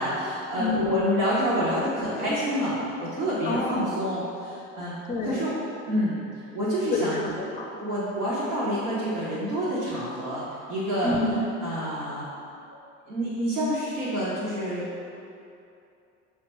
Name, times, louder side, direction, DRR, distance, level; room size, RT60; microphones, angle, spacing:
voice 1, 0.0-5.0 5.2-5.5 5.9-6.2 6.5-7.3 7.8-11.1 11.6-12.3 13.1-14.9, equal, 80° right, -9 dB, 0.8 m, -28 dB
voice 2, 0.6-1.0 3.4-3.9 5.1-5.5 6.9-7.7 11.0-11.5, left 2 dB, 20° left, 1 dB, 0.5 m, -28 dB
4.9 x 2.2 x 2.9 m, 2.6 s
hypercardioid pair, 65°, 38 cm